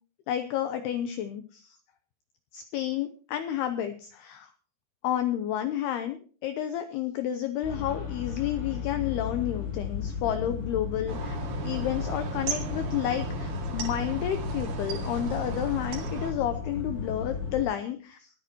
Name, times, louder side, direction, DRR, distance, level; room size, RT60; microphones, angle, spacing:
voice 1, 0.3-1.8 2.5-4.5 5.0-11.4 11.6-18.3, left 11 dB, 90° left, 9 dB, 2.3 m, -31 dB
sound 1, 7.6-17.6, left 5 dB, 70° left, 6.6 m, -34 dB
sound 2, 11.1-16.3, right 5 dB, 55° right, 3.3 m, -36 dB
24.0 x 9.3 x 3.0 m, 0.40 s
omnidirectional pair, 5.6 m